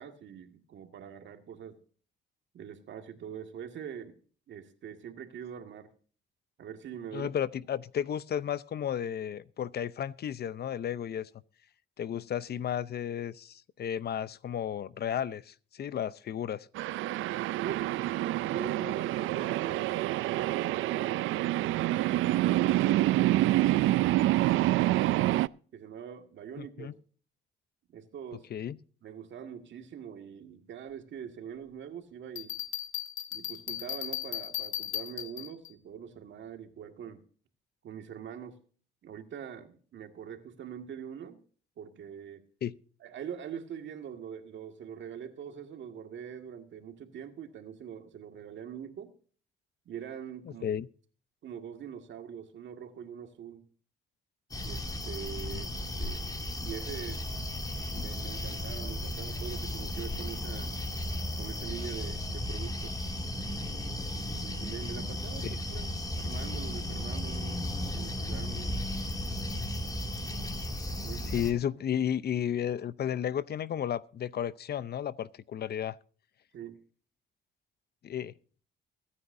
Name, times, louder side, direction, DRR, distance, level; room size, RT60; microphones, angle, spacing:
voice 1, 0.0-1.8 2.5-4.2 4.5-5.9 6.6-7.3 17.6-21.5 22.3-26.9 27.9-28.5 29.0-32.6 33.3-37.2 37.8-38.6 39.0-41.4 41.8-42.4 43.0-49.1 49.9-50.6 51.4-53.7 54.5-55.7 56.0-56.3 56.6-57.4 57.9-60.7 61.4-63.0 64.1-68.8 71.0-71.5 76.5-76.8, right 8 dB, 70° right, 2.0 m, -43 dB
voice 2, 7.1-11.3 12.0-16.7 26.6-26.9 28.5-28.8 42.6-42.7 50.6-50.9 55.5-55.7 65.4-65.6 71.2-76.0 78.0-78.3, left 9 dB, 55° left, 0.7 m, -33 dB
sound 1, 16.8-25.5, right 16 dB, 85° right, 0.4 m, -27 dB
Bell, 32.4-35.7, left 12 dB, 85° left, 1.4 m, -36 dB
sound 2, 54.5-71.5, left 1 dB, 20° left, 2.5 m, -35 dB
23.5 x 9.7 x 2.7 m
cardioid pair, 90°, 20 cm